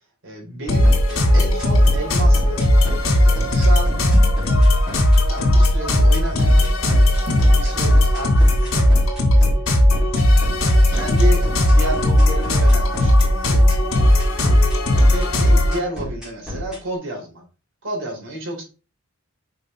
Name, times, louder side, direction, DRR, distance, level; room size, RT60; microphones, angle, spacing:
voice 1, 0.2-2.7 3.1-3.9 5.3-6.7 7.5-9.6 10.9-13.7 14.5-14.7 15.1-17.4 17.8-18.6, right 1 dB, 65° right, -1 dB, 3.9 m, -31 dB
sound 1, 0.7-15.8, left 1 dB, 80° left, 3.1 m, -16 dB
sound 2, 0.8-16.8, left 1 dB, 5° right, 3.9 m, -31 dB
sound 3, 4.0-4.6 6.1-6.6 7.2-7.6 7.9-8.0, left 1 dB, 55° left, 1.5 m, -33 dB
6.5 x 5.7 x 3.8 m, 0.32 s
head